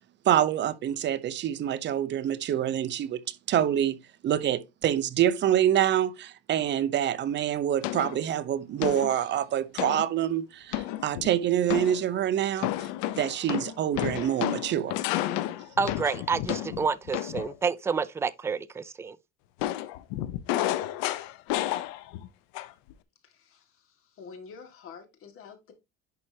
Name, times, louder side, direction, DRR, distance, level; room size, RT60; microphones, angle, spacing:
voice 1, 0.2-12.9 13.2-15.0, right 10 dB, 35° right, 0.7 m, -26 dB
sound 1, 7.8-8.2 8.8-9.2 9.8-10.1 10.7-11.3 11.7-12.1 12.6-17.5 19.6-22.3 22.5-22.9, left 14 dB, 80° left, 0.8 m, -31 dB
voice 2, 15.8-19.2, right 5 dB, 10° right, 0.3 m, -29 dB
voice 3, 23.2-25.7, left 5 dB, 45° left, 2.1 m, -48 dB
10.5 x 4.4 x 2.8 m
cardioid pair, 145°, 31 cm